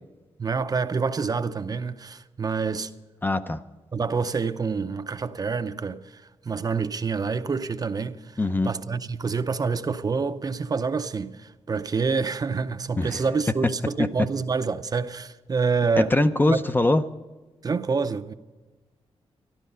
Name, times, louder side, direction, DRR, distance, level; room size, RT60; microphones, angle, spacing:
voice 1, 0.4-2.9 3.9-8.3 8.6-16.1 16.5-16.6 17.6-18.3, right 5 dB, 35° right, 0.6 m, -27 dB
voice 2, 3.2-3.6 8.4-8.7 13.0-13.2 14.0-14.3 16.0-17.0, left 2 dB, 20° left, 0.5 m, -22 dB
14.0 x 12.0 x 5.5 m
cardioid pair, 100°, 11 cm